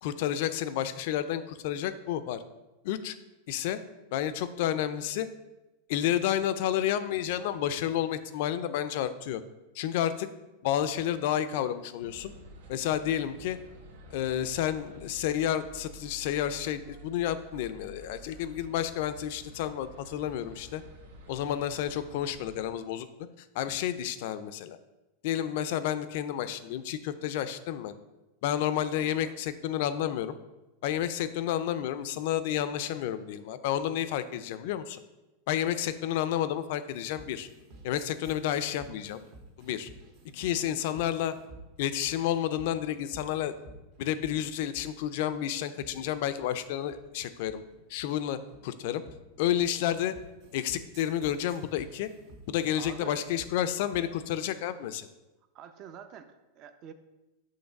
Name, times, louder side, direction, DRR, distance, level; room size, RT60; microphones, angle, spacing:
voice 1, 0.0-2.4 2.8-3.2 3.5-3.8 4.1-5.3 5.9-9.4 9.7-10.3 10.6-12.3 12.7-13.6 14.1-20.8 21.3-23.1 23.5-24.8 25.2-27.9 28.4-30.4 30.8-35.0 35.5-37.5 37.8-39.2 39.6-39.9 40.3-41.3 41.8-43.5 44.0-47.6 47.9-48.4 48.6-49.0 49.4-50.1 50.5-52.1 52.5-55.1, left 11 dB, 60° left, 12 dB, 0.4 m, -30 dB
sound 1, 12.0-22.7, right 1 dB, 85° right, 0.9 m, -50 dB
voice 2, 28.8-29.4 52.7-53.3 55.5-56.9, right 8 dB, 40° right, 9 dB, 0.6 m, -47 dB
sound 2, 36.9-54.2, right 2 dB, 55° right, 1.4 m, -52 dB
6.5 x 3.2 x 5.8 m, 1.0 s
supercardioid pair, 135°, 0 cm